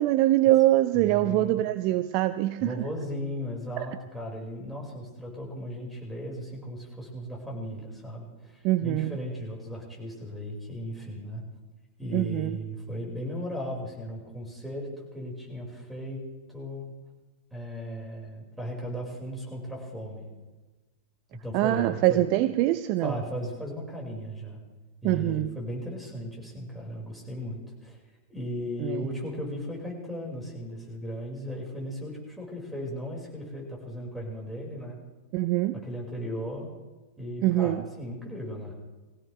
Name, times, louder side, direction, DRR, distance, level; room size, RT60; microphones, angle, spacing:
voice 1, 0.0-2.7 3.8-3.9 8.6-9.2 12.1-12.6 21.5-23.2 25.0-25.6 28.8-29.1 35.3-35.8 37.4-37.8, right 16 dB, 45° right, 13 dB, 0.5 m, -24 dB
voice 2, 0.9-1.6 2.6-11.4 12.0-16.2 16.5-16.9 17.5-20.3 21.3-22.3 23.0-24.6 25.0-28.0 28.3-35.0 35.8-36.7 37.2-38.7, equal, 5° right, -2 dB, 5.3 m, -36 dB
21.5 x 16.5 x 3.4 m, 1.2 s
figure-of-eight pair, 95°, 0 cm